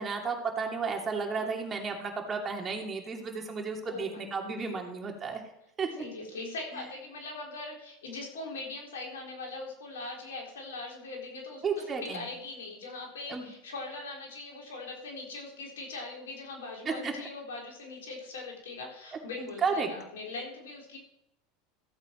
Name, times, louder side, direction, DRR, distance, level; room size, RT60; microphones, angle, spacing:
voice 1, 0.0-5.4 5.8-6.0 11.6-12.3 13.3-13.5 17.0-17.1 19.4-19.9, right 5 dB, 30° right, 2 dB, 2.7 m, -33 dB
voice 2, 3.8-4.6 6.0-21.0, left 3 dB, 85° left, -1 dB, 4.0 m, -41 dB
14.5 x 8.1 x 4.6 m, 0.79 s
hypercardioid pair, 95°, 0 cm